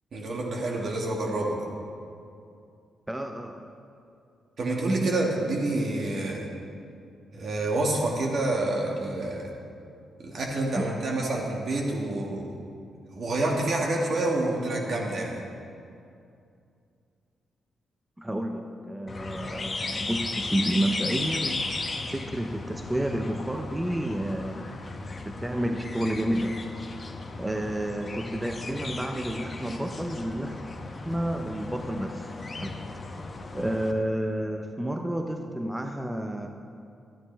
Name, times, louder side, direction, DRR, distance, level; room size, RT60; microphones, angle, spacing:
voice 1, 0.1-1.7 4.6-6.5 7.3-9.5 10.2-12.5 13.1-15.4, right 2 dB, 60° right, -1 dB, 1.9 m, -28 dB
voice 2, 3.1-3.7 10.8-10.9 18.2-24.7 25.2-26.6 27.4-30.6 31.0-32.3 32.6-32.7 33.5-36.5, right 1 dB, 15° right, 4 dB, 0.7 m, -30 dB
sound 1, 19.1-33.9, left 3 dB, 40° left, 0.9 m, -35 dB
12.0 x 9.9 x 3.4 m, 2.5 s
supercardioid pair, 50°, 0 cm